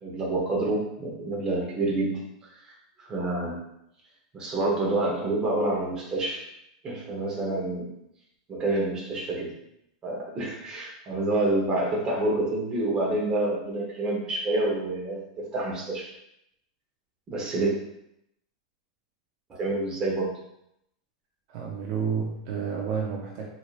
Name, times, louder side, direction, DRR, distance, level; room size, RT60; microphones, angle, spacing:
voice 1, 0.0-2.2 3.0-3.6 4.3-6.5 6.8-7.9 8.5-9.5 10.0-16.1 17.3-17.7 19.5-20.3, right 2 dB, 20° right, -3 dB, 0.9 m, -28 dB
voice 2, 21.5-23.5, right 6 dB, 50° right, -1 dB, 0.5 m, -30 dB
4.4 x 2.8 x 2.4 m, 0.80 s
supercardioid pair, 155°, 4 cm